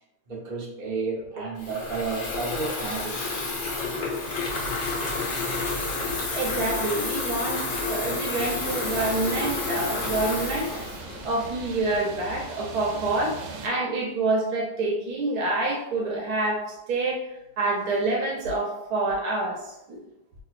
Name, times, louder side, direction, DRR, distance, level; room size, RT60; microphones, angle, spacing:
voice 1, 0.3-3.3, right 4 dB, 45° right, -5 dB, 0.7 m, -32 dB
Water tap faucet / Fill (with liquid), 1.6-11.8, left 3 dB, 70° left, 1.4 m, -30 dB
voice 2, 6.3-10.7 11.2-13.4 13.6-16.6 16.9-17.2 17.6-19.6 19.9-20.0, right 2 dB, 70° right, -1 dB, 1.1 m, -27 dB
sound 1, 8.4-13.7, right 3 dB, 85° right, 1.2 m, -40 dB
3.1 x 2.9 x 2.4 m, 0.86 s
omnidirectional pair, 1.8 m